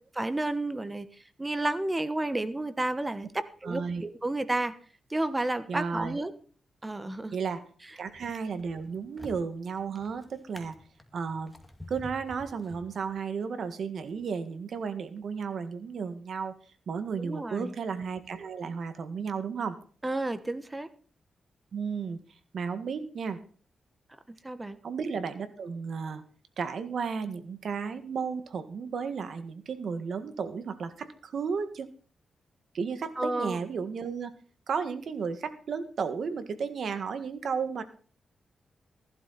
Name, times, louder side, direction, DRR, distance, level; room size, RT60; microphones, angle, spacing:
voice 1, 0.2-4.7 5.1-6.3 6.8-7.4 17.2-17.7 20.0-20.9 24.3-24.8 33.2-33.6, right 2 dB, 20° right, 13 dB, 1.3 m, -31 dB
voice 2, 3.6-4.0 5.7-6.2 7.3-7.6 8.0-10.7 11.1-11.5 11.9-16.5 16.9-19.8 21.7-22.2 22.5-23.4 24.8-26.2 26.6-31.9 32.7-34.3 34.7-37.8, right 5 dB, 70° right, 10 dB, 1.7 m, -33 dB
Drawer open or close, 7.2-7.6 8.1-13.3 14.0-14.2, left 1 dB, 5° left, 2.2 m, -49 dB
15.0 x 11.5 x 4.2 m, 0.41 s
cardioid pair, 85°, 0 cm